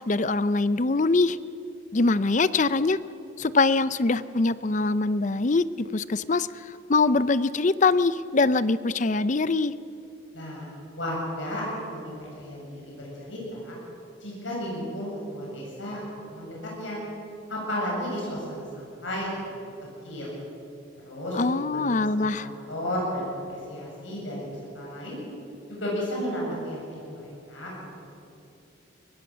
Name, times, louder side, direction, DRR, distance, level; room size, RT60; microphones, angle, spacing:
voice 1, 0.0-1.4 1.9-3.0 3.4-9.7 21.3-22.5, left 3 dB, 40° left, 16 dB, 0.5 m, -23 dB
voice 2, 10.3-13.7 14.2-16.0 16.3-17.0 17.5-19.7 20.0-20.3 21.0-24.4 24.7-25.2 25.7-27.9, equal, 75° left, -3 dB, 7.4 m, -33 dB
23.0 x 20.5 x 7.4 m, 2.7 s
head